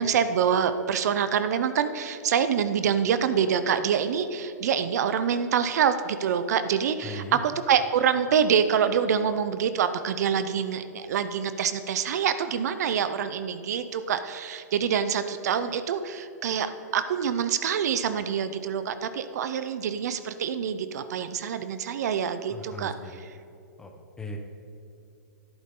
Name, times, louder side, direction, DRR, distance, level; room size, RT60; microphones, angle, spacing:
voice 1, 0.0-23.3, right 7 dB, 65° right, 11 dB, 0.7 m, -26 dB
voice 2, 7.0-7.4 22.5-23.3 23.8-23.9 24.2-24.4, left 1 dB, 5° left, 3 dB, 1.0 m, -38 dB
13.0 x 11.0 x 3.8 m, 2.7 s
hypercardioid pair, 160°, 10 cm